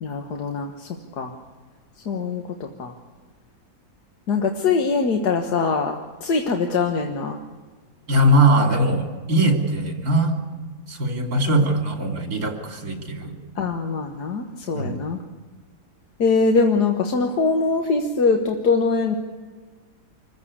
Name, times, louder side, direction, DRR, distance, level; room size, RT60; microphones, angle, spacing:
voice 1, 0.0-0.9 1.2-1.3 2.1-2.9 4.3-7.4 13.6-15.2 16.2-19.2, left 4 dB, 80° left, 3 dB, 1.9 m, -22 dB
voice 2, 8.1-10.4 10.9-13.4 14.7-15.0, right 1 dB, 65° right, 3 dB, 3.5 m, -20 dB
26.0 x 15.0 x 8.6 m, 1.5 s
omnidirectional pair, 1.7 m